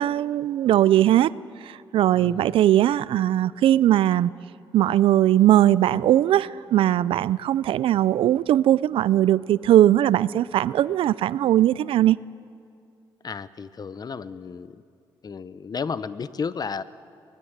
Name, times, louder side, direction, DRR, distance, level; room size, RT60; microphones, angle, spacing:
voice 1, 0.0-1.3 1.6-4.3 4.7-12.2, right 12 dB, 75° right, 20 dB, 0.5 m, -19 dB
voice 2, 2.1-2.5 13.2-14.8 15.2-16.8, left 5 dB, 45° left, 15 dB, 0.9 m, -33 dB
23.5 x 20.0 x 8.1 m, 2.3 s
supercardioid pair, 65°, 9 cm